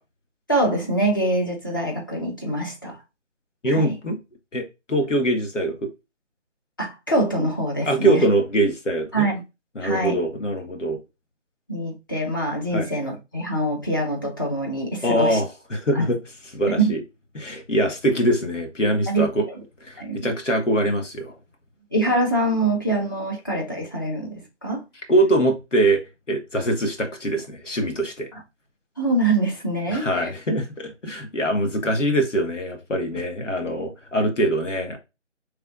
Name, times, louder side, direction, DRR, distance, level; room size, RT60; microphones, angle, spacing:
voice 1, 0.5-3.0 3.7-3.9 6.8-8.2 9.1-9.4 9.8-10.2 11.7-15.4 15.9-16.1 16.8-16.9 19.1-19.6 20.0-20.3 21.9-24.8 28.3-28.4 29.0-30.3, right 1 dB, 20° left, 0.7 m, -24 dB
voice 2, 3.6-4.2 4.5-5.8 7.8-9.2 9.7-11.0 12.7-12.9 15.0-16.2 16.5-17.0 17.3-19.5 19.8-21.4 25.1-28.3 29.9-35.0, right 1 dB, 85° left, 1.5 m, -23 dB
5.1 x 3.3 x 2.4 m
figure-of-eight pair, 160°, 36 cm